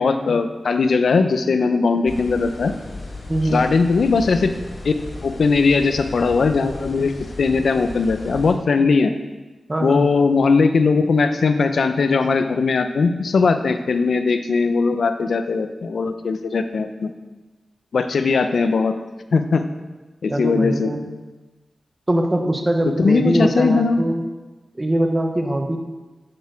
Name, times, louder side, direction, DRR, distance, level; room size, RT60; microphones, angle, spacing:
voice 1, 0.0-2.7 3.5-4.5 4.8-4.9 5.2-7.1 7.4-9.1 9.8-17.1 17.9-18.9 19.3-19.6 20.2-20.9 22.9-24.0, left 4 dB, 70° left, 8 dB, 0.9 m, -19 dB
sound 1, 2.1-8.5, left 2 dB, 50° left, 3.4 m, -36 dB
voice 2, 3.3-3.8 9.7-10.1 20.3-21.1 22.1-24.2 24.8-25.8, right 1 dB, 20° right, 3 dB, 1.3 m, -22 dB
9.7 x 8.0 x 7.1 m, 1.2 s
wide cardioid pair, 130°, 0 cm